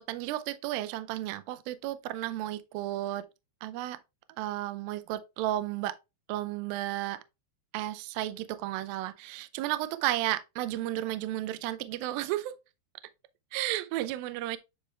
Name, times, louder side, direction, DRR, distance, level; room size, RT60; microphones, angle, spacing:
voice 1, 0.0-3.3 3.6-4.0 4.4-6.0 6.3-7.2 7.7-12.6 13.5-14.6, right 14 dB, 85° right, 2.0 m, -33 dB
9.8 x 3.4 x 3.2 m
omnidirectional pair, 4.8 m